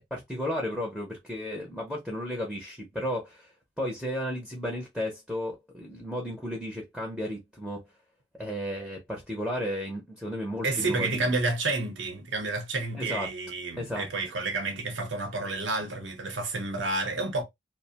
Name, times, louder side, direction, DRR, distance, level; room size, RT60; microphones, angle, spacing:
voice 1, 0.1-3.5 3.8-7.8 8.3-11.4 13.0-13.3 13.8-14.3, equal, ahead, 0.6 m, -34 dB
voice 2, 10.6-17.4, right 3 dB, 90° right, 0.9 m, -30 dB
2.5 x 2.1 x 2.7 m
head